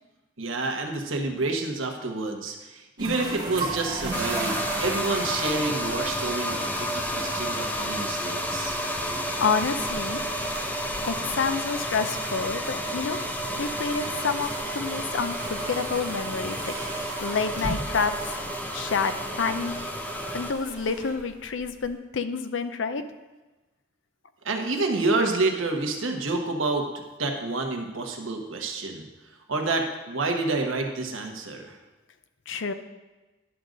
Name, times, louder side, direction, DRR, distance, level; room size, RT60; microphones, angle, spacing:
voice 1, 0.4-8.8 24.4-26.9 27.2-29.1 29.5-31.8, right 3 dB, 85° right, 2 dB, 1.2 m, -28 dB
sound 1, 3.0-21.9, right 2 dB, 25° right, 1.8 m, -37 dB
sound 2, 4.1-20.5, equal, 10° left, 0.5 m, -31 dB
voice 2, 9.4-10.2 11.1-13.2 13.6-16.6 17.2-18.3 18.7-19.7 20.3-23.0 32.5-32.7, left 5 dB, 70° left, 9 dB, 0.6 m, -28 dB
11.0 x 3.9 x 6.3 m, 1.2 s
head